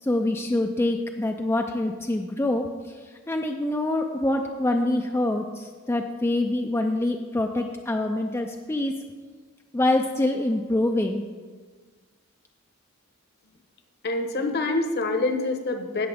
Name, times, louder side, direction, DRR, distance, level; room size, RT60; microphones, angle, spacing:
voice 1, 0.0-2.9 3.3-9.0 9.7-11.2, left 1 dB, 10° left, 3 dB, 0.4 m, -25 dB
voice 2, 14.0-16.1, left 2 dB, 50° left, 6 dB, 1.0 m, -26 dB
16.5 x 6.7 x 3.5 m, 1.5 s
head